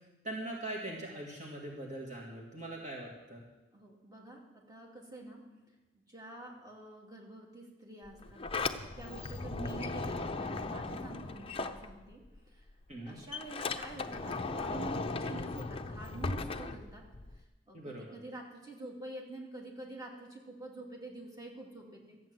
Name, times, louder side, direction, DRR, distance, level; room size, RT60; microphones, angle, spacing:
voice 1, 0.2-3.4 12.9-13.2 17.7-18.2, right 1 dB, 40° right, -1 dB, 1.8 m, -41 dB
voice 2, 3.7-5.5 5.9-8.4 8.8-12.7 13.1-17.1 17.4-22.2, right 2 dB, 20° right, -1 dB, 2.3 m, -47 dB
Sliding door, 8.1-12.4 12.7-17.4, left 3 dB, 30° left, 0.6 m, -37 dB
13.0 x 8.5 x 7.7 m, 1.1 s
head